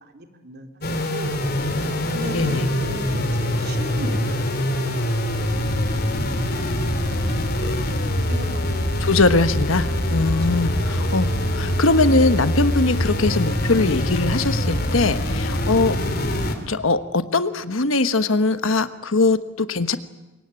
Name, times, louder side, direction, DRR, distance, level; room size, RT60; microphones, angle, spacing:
voice 1, 0.1-0.8 1.1-1.4 2.0-6.7 7.1-7.7 8.3-8.9 10.5-10.6 15.5-15.6, right 1 dB, 55° right, 5 dB, 3.1 m, -37 dB
sound 1, 0.8-16.5, left 1 dB, 50° left, 3.2 m, -24 dB
voice 2, 2.3-2.7 9.0-16.0 16.7-20.0, left 3 dB, 80° left, 11 dB, 1.3 m, -21 dB
26.0 x 22.5 x 9.0 m, 1.1 s
head